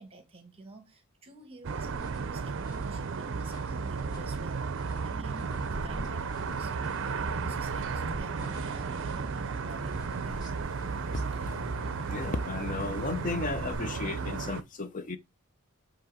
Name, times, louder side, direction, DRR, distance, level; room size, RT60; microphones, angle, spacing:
voice 1, 0.0-4.7 5.0-10.0 11.3-11.4, right 3 dB, 25° right, 1.5 m, -50 dB
sound 1, 1.6-14.6, right 5 dB, 55° right, 0.5 m, -34 dB
sound 2, 1.7-13.7, equal, 20° left, 1.5 m, -48 dB
sound 3, 5.3-14.5, left 5 dB, 85° left, 0.5 m, -49 dB
voice 2, 12.1-15.2, left 3 dB, 35° left, 0.6 m, -34 dB
7.5 x 2.9 x 4.9 m
head